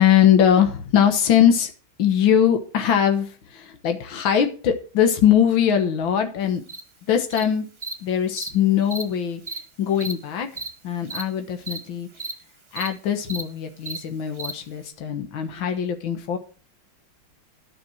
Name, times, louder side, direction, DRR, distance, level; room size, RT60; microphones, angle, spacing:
voice 1, 0.0-1.7 2.0-6.6 7.1-7.7 8.0-9.4 9.8-12.1 12.7-16.4, left 9 dB, 70° left, 6 dB, 2.0 m, -21 dB
Cricket, 6.7-6.8 7.3-7.4 7.8-7.9 8.4-8.5 8.9-9.0 9.5-9.6 10.0-10.1 10.6-10.7 11.0-11.2 11.7-11.8 12.1-12.3 12.7-12.9 13.2-13.4 13.8-14.0 14.4-14.5, right 3 dB, 20° right, 0.7 m, -32 dB
10.5 x 6.0 x 6.2 m, 0.39 s
omnidirectional pair, 2.2 m